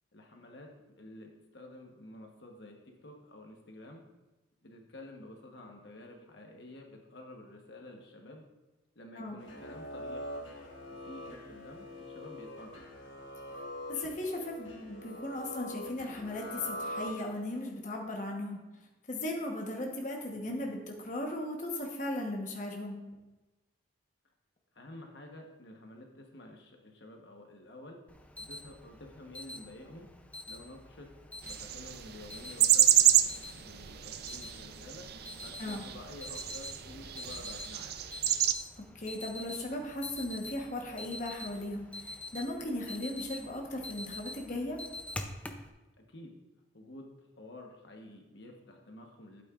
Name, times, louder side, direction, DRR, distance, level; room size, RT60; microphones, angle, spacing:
voice 1, 0.1-0.7 1.0-4.0 4.6-8.5 8.9-10.3 10.9-12.8 20.3-20.5 24.7-28.0 28.4-30.1 30.5-31.1 31.4-33.1 33.6-35.1 35.4-38.0 43.4-43.5 46.0-46.3 46.7-49.4, left 1 dB, 65° left, 2 dB, 1.1 m, -50 dB
sound 1, 9.4-17.6, left 1 dB, 85° left, 1.5 m, -43 dB
voice 2, 13.9-18.6 19.1-23.0 35.6-35.8 38.9-44.8, left 1 dB, 40° left, 0 dB, 1.1 m, -37 dB
Alarm, 28.1-45.7, left 2 dB, 5° left, 0.4 m, -46 dB
sound 2, 31.5-38.5, right 12 dB, 55° right, 0.4 m, -29 dB
12.0 x 8.6 x 2.4 m, 1.1 s
head